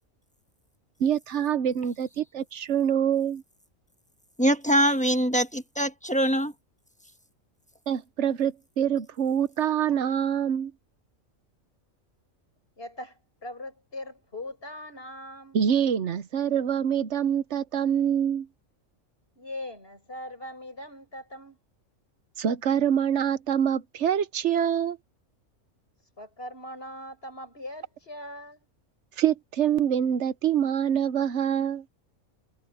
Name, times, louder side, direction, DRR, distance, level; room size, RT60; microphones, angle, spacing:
voice 1, 1.0-3.4 7.9-10.7 15.5-18.5 22.4-25.0 29.2-31.8, right 9 dB, 65° right, 1.1 m, -25 dB
voice 2, 4.4-6.5, equal, 5° left, 1.1 m, -23 dB
voice 3, 12.8-15.6 19.3-21.6 26.2-28.7, left 1 dB, 50° left, 6.7 m, -40 dB
omnidirectional pair, 1.4 m